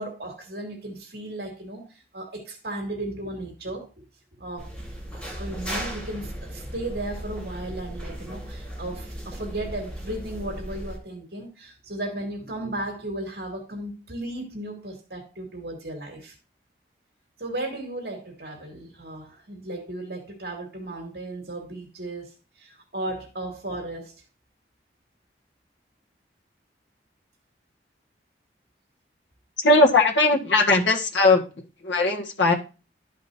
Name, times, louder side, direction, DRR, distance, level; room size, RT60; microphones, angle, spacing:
voice 1, 0.0-3.9 4.4-4.7 5.3-16.3 17.4-24.1, right 1 dB, 60° right, 2.5 m, -35 dB
sound 1, 4.6-11.0, equal, 5° left, 1.7 m, -36 dB
voice 2, 29.6-31.4 31.8-32.5, left 2 dB, 90° left, 1.8 m, -19 dB
12.5 x 5.2 x 2.8 m
head